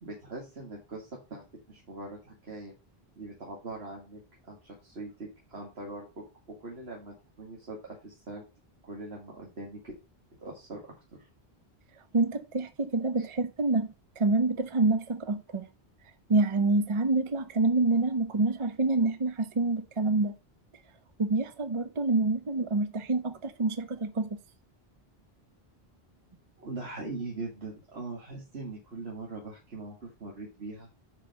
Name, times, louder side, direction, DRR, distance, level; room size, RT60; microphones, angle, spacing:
voice 1, 0.0-2.7 3.2-7.8 8.0-8.4 8.8-9.9 10.4-10.8 11.1-11.3 13.2-13.3 26.6-30.9, right 2 dB, 85° right, 2.1 m, -41 dB
voice 2, 12.1-13.9 14.2-15.7 16.3-20.3 21.2-24.3, right 3 dB, 35° right, 0.7 m, -27 dB
5.6 x 5.2 x 6.5 m
omnidirectional pair, 1.0 m